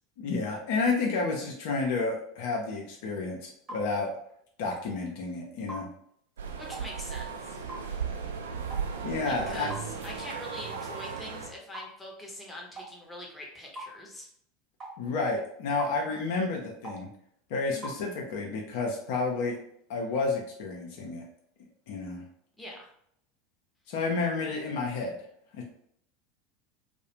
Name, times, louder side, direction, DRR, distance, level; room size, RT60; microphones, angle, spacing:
voice 1, 0.2-4.1 4.6-5.9 9.0-9.7 15.0-17.1 17.5-19.6 19.9-21.2 21.9-22.2 23.9-25.1 25.5-25.6, left 3 dB, 60° left, 0 dB, 0.5 m, -30 dB
sound 1, 3.7-3.9 4.7-4.9 5.7-5.9 6.7-6.9 7.7-7.9 8.7-8.9 9.7-9.9 10.7-10.9 11.7-11.9 12.8-12.9 13.8-13.9 14.8-15.0 15.8-16.0 16.8-17.0 17.8-18.0, right 1 dB, 30° right, 1.2 m, -41 dB
sound 2, 6.4-11.5, right 6 dB, 70° right, 0.4 m, -36 dB
voice 2, 6.5-7.6 9.3-14.3 17.7-17.9 22.6-22.9, left 1 dB, 5° left, -2 dB, 0.8 m, -43 dB
2.3 x 2.1 x 2.8 m, 0.67 s
figure-of-eight pair, 80°, 0 cm